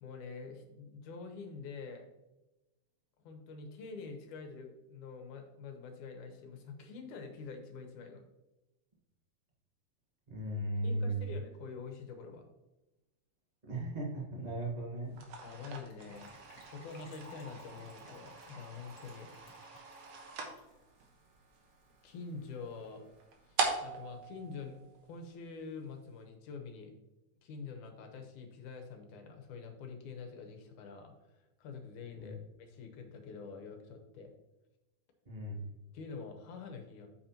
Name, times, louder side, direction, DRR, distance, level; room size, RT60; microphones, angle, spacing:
voice 1, 0.0-2.1 3.2-8.2 10.8-12.4 15.4-16.3 16.7-19.9 22.0-23.0 23.4-26.9 27.4-34.3 35.9-37.1, left 5 dB, 75° left, 4 dB, 2.5 m, -46 dB
voice 2, 10.3-11.3 13.6-15.2 32.2-32.4 35.3-35.7, right 1 dB, 90° right, -3 dB, 0.3 m, -36 dB
sound 1, 15.1-25.5, right 4 dB, 60° right, 2.0 m, -42 dB
Gurgling / Trickle dribble / Fill (with liquid), 15.9-22.1 22.4-22.5 22.7-22.9 23.2-23.3, equal, 35° left, 1.5 m, -58 dB
8.5 x 7.7 x 2.9 m, 1.0 s
omnidirectional pair, 3.5 m